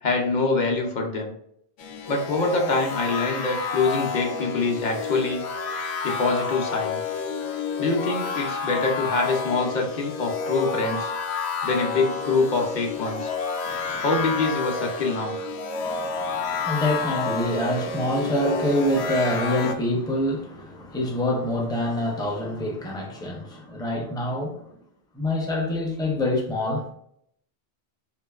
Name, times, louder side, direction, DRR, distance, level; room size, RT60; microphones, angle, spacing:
voice 1, 0.0-1.3 2.1-5.4 6.0-7.0 7.8-11.1 11.6-13.3 14.0-15.3, left 3 dB, 50° left, 0.7 m, -25 dB
sound 1, 1.8-19.7, left 4 dB, 85° left, 0.8 m, -30 dB
voice 2, 13.6-14.0 15.4-15.5 15.7-24.7 25.1-26.9, left 1 dB, 5° left, 0.4 m, -26 dB
3.7 x 2.6 x 2.3 m
omnidirectional pair, 1.1 m